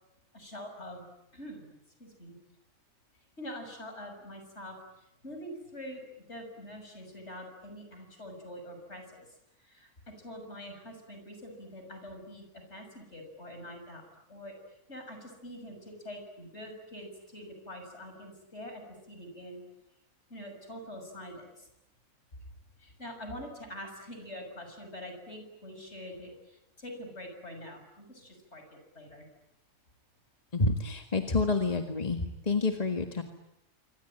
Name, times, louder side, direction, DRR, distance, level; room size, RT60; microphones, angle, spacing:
voice 1, 0.3-1.1 1.3-1.7 2.0-2.4 3.4-9.3 9.6-14.5 14.9-19.6 20.3-21.7 22.8-29.3, equal, 50° left, 5 dB, 7.0 m, -45 dB
voice 2, 30.5-33.2, left 3 dB, 30° left, 4 dB, 1.8 m, -28 dB
26.5 x 25.0 x 9.0 m, 0.88 s
omnidirectional pair, 1.4 m